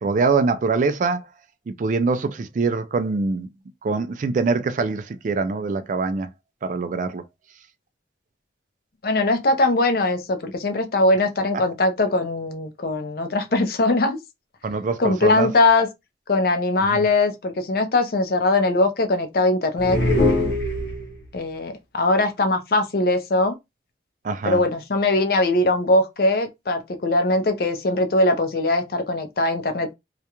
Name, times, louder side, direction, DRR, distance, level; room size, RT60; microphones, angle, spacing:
voice 1, 0.0-1.3 1.7-3.5 3.8-6.3 6.6-7.2 14.6-15.5 16.8-17.1 24.2-24.6, right 4 dB, 45° right, 0.3 m, -24 dB
voice 2, 9.0-14.2 15.0-15.9 16.3-20.0 21.3-23.6 24.4-29.9, left 2 dB, 55° left, 0.5 m, -21 dB
sound 1, 19.8-21.3, left 1 dB, 85° left, 0.9 m, -22 dB
2.4 x 2.1 x 2.9 m
head